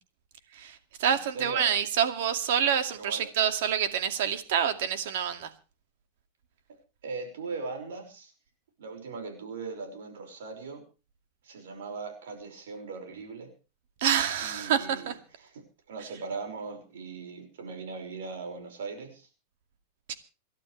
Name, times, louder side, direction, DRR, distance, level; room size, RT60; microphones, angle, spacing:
voice 1, 0.5-5.5 14.0-15.2 20.1-20.2, right 8 dB, 65° right, 2.3 m, -27 dB
voice 2, 1.3-1.7 2.9-3.3 7.0-8.3 8.8-10.8 11.4-13.5 14.4-15.1 15.4-15.5 15.9-19.3, right 4 dB, 85° right, 5.6 m, -39 dB
28.0 x 12.0 x 3.3 m
supercardioid pair, 150°, 0 cm